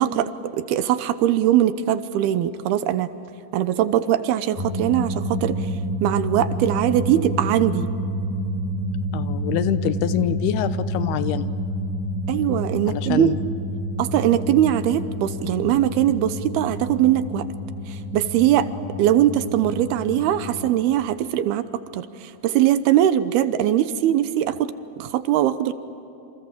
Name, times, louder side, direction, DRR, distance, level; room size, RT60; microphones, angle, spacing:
voice 1, 0.0-3.1 3.5-5.6 6.0-7.9 12.3-13.3 14.0-17.5 17.9-18.7 19.0-21.7 21.9-24.7 25.0-25.7, right 12 dB, 80° right, 12 dB, 2.8 m, -21 dB
sound 1, 4.6-20.7, equal, 50° left, 2.9 m, -29 dB
voice 2, 9.1-11.5 12.9-13.4, left 11 dB, 80° left, 12 dB, 2.8 m, -25 dB
28.0 x 27.5 x 7.2 m, 2.8 s
omnidirectional pair, 4.7 m